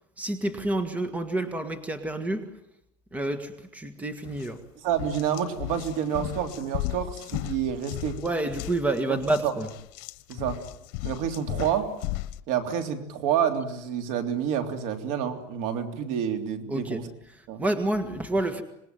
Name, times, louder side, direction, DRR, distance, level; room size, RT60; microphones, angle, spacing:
voice 1, 0.2-2.5 3.1-4.6 8.2-9.7 16.7-17.0 17.3-18.6, right 2 dB, 10° right, 10 dB, 1.8 m, -29 dB
sound 1, 4.3-4.5 4.9-12.4, left 17 dB, 80° left, 1.2 m, -36 dB
voice 2, 4.8-8.2 9.1-9.5 10.3-10.6 11.0-11.9 12.5-17.1 17.5-17.6, right 8 dB, 70° right, 7 dB, 3.2 m, -28 dB
26.5 x 20.5 x 9.2 m, 0.79 s
cardioid pair, 155°, 13 cm